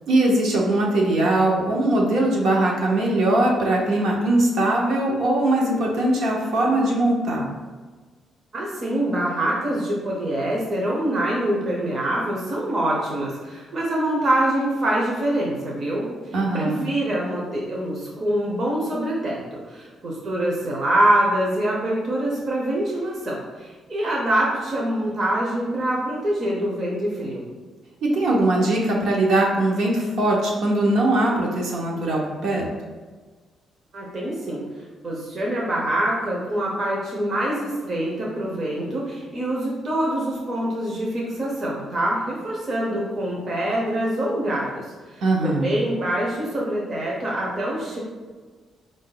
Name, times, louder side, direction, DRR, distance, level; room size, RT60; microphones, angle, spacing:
voice 1, 0.1-7.5 16.3-16.8 28.0-32.6 45.2-45.7, right 1 dB, 65° right, -2 dB, 0.9 m, -21 dB
voice 2, 8.5-27.5 33.9-48.0, right 1 dB, 35° right, -4 dB, 0.7 m, -25 dB
4.7 x 2.6 x 3.8 m, 1.4 s
cardioid pair, 175°, 0 cm